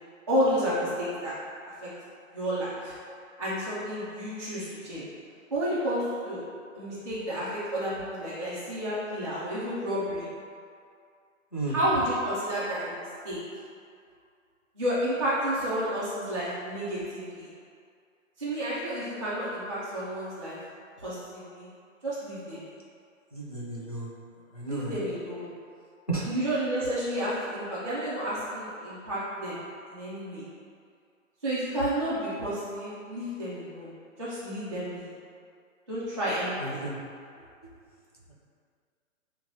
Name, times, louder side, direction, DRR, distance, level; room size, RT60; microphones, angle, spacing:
voice 1, 0.3-1.3 1.8-1.9 2.3-2.9 3.4-5.0 5.5-6.4 6.7-10.3 11.7-13.4 14.7-17.5 18.4-20.6 21.0-21.7 22.0-22.6 24.7-25.5 26.3-29.6 29.9-30.4 31.4-33.9 34.2-35.1 35.9-36.8, equal, 25° right, -13 dB, 0.5 m, -31 dB
voice 2, 23.3-24.1 24.5-25.0 26.1-26.3 36.6-37.0, right 2 dB, 30° left, -6 dB, 0.4 m, -33 dB
7.0 x 2.9 x 2.6 m, 2.3 s
hypercardioid pair, 175°, 40 cm